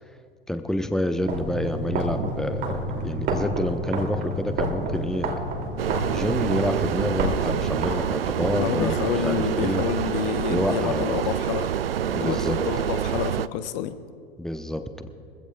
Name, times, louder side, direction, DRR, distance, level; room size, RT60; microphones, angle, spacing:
voice 1, 0.5-5.4 6.1-8.9 9.2-9.8 10.5-11.1 12.2-12.6 14.4-15.1, left 1 dB, ahead, 7 dB, 0.9 m, -28 dB
sound 1, 1.2-8.6, right 1 dB, 35° right, 2.6 m, -29 dB
sound 2, 5.8-13.5, right 9 dB, 75° right, 0.5 m, -27 dB
voice 2, 8.6-11.7 12.1-13.9, left 10 dB, 45° left, 11 dB, 0.9 m, -29 dB
24.5 x 15.5 x 2.3 m, 2.3 s
figure-of-eight pair, 85°, 29 cm